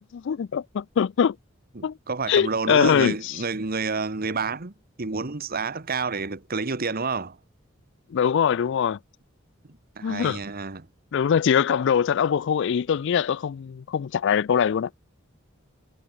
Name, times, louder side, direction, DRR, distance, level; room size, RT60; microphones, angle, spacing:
voice 1, 0.0-1.4 1.8-2.0 2.3-3.4 8.1-9.0 10.0-10.4 11.1-14.9, left 7 dB, 65° left, 0.4 m, -23 dB
voice 2, 1.8-4.7 5.0-7.4 10.0-10.9, right 4 dB, 50° right, 1.3 m, -29 dB
head